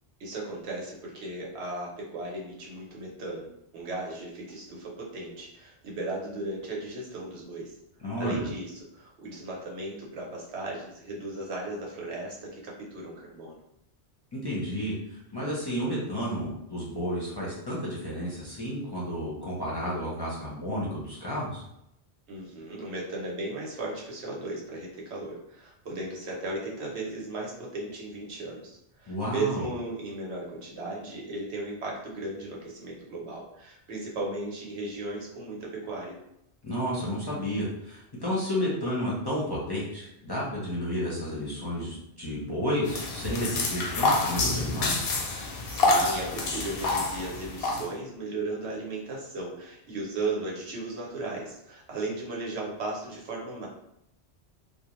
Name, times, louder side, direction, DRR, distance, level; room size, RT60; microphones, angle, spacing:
voice 1, 0.2-3.5 3.7-7.7 8.1-13.6 22.3-36.2 45.7-53.7, right 2 dB, 85° right, -2 dB, 1.0 m, -36 dB
voice 2, 8.0-8.5 14.3-21.6 29.1-29.7 36.6-44.9, equal, 25° left, -7 dB, 0.6 m, -31 dB
sound 1, 42.8-47.9, left 2 dB, 65° left, 0.7 m, -27 dB
2.4 x 2.1 x 2.9 m, 0.81 s
omnidirectional pair, 1.1 m